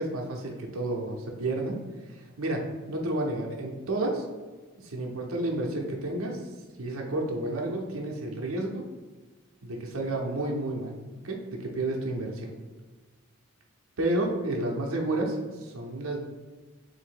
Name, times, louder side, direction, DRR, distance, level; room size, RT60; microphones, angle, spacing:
voice 1, 0.0-4.3 4.8-8.9 9.6-10.9 11.2-12.5 14.0-16.2, right 2 dB, 75° right, 0 dB, 0.6 m, -31 dB
3.5 x 2.6 x 4.6 m, 1.4 s
head